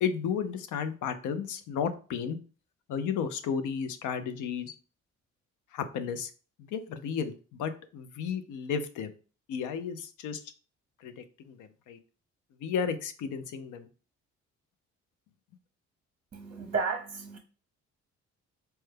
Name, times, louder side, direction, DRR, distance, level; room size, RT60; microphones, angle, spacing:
voice 1, 0.0-2.4 2.9-4.7 5.7-6.3 6.7-9.1 9.5-10.4 11.0-12.0 12.6-13.9, left 7 dB, 85° left, 0.6 m, -33 dB
voice 2, 16.3-17.4, right 5 dB, 30° right, 0.7 m, -33 dB
4.4 x 2.2 x 3.3 m
cardioid pair, 90°, 30 cm